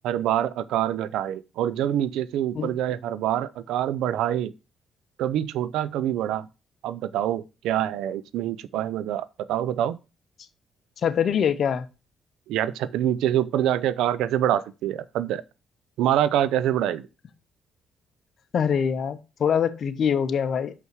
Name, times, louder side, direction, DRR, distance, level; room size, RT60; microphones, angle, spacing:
voice 1, 0.0-4.5 5.2-6.5 6.8-10.0 12.5-15.4 16.0-17.1, right 11 dB, 90° right, 0.5 m, -25 dB
voice 2, 11.0-11.9 18.5-20.7, left 7 dB, 55° left, 0.9 m, -24 dB
6.1 x 5.6 x 4.7 m
cardioid pair, 90°, 0 cm